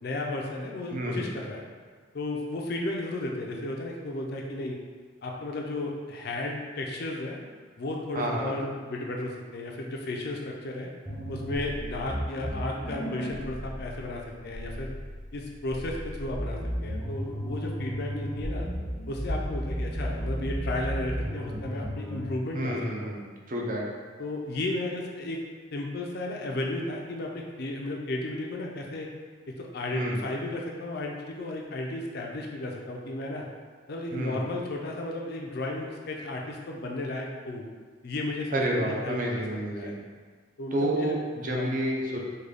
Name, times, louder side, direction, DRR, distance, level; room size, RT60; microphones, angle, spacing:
voice 1, 0.0-1.6 2.1-4.8 5.2-7.4 7.8-10.9 11.3-14.9 15.3-18.7 19.1-23.1 24.2-25.4 25.7-29.1 29.5-33.5 33.9-37.7 38.0-40.0 40.6-41.2 41.4-41.7, left 2 dB, 50° left, 0 dB, 0.4 m, -34 dB
voice 2, 0.9-1.3 8.1-8.5 22.5-23.8 29.9-30.2 34.1-34.4 38.5-39.9 40.7-42.2, right 1 dB, 40° right, -1 dB, 0.4 m, -30 dB
sound 1, 11.1-22.3, equal, 5° right, 0.7 m, -34 dB
3.7 x 2.3 x 3.2 m, 1.5 s
head